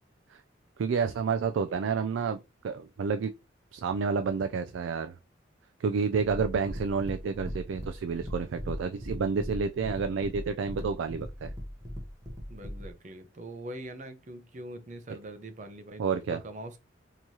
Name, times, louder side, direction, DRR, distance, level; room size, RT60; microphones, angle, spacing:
voice 1, 0.8-3.3 3.7-5.1 5.8-11.5 16.0-16.4, right 5 dB, 90° right, 0.3 m, -30 dB
sound 1, 6.2-12.9, equal, 20° right, 0.9 m, -39 dB
voice 2, 12.5-16.0 16.3-16.8, right 1 dB, 40° right, 0.6 m, -42 dB
4.5 x 3.0 x 2.7 m
head